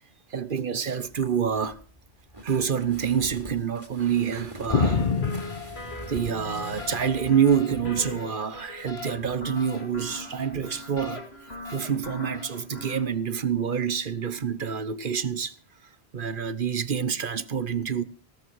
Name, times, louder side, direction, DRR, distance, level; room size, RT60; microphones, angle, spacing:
voice 1, 0.3-1.8 2.4-5.1 5.7-11.3 11.7-15.6 16.1-18.0, right 7 dB, 55° right, 1.1 m, -27 dB
sound 1, 1.0-7.4, right 1 dB, 30° right, 3.0 m, -43 dB
sound 2, 4.7-13.0, left 4 dB, 80° left, 2.5 m, -40 dB
sound 3, 4.7-7.0 7.3-8.3 9.1-9.5 10.5-10.7, left 5 dB, 50° left, 1.1 m, -29 dB
17.0 x 13.0 x 4.7 m
omnidirectional pair, 1.1 m